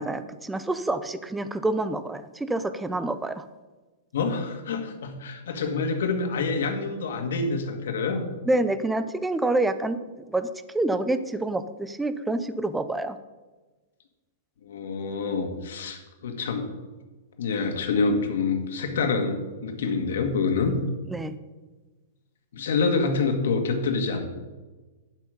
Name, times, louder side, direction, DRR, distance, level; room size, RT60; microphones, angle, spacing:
voice 1, 0.0-3.5 8.5-10.0 10.3-10.5 10.7-13.2 21.1-21.4, right 2 dB, 5° right, 12 dB, 0.4 m, -27 dB
voice 2, 4.1-8.2 14.6-16.6 17.4-19.4 19.6-20.8 22.5-24.3, left 4 dB, 65° left, 5 dB, 1.8 m, -26 dB
11.0 x 7.8 x 5.1 m, 1.2 s
supercardioid pair, 175°, 0 cm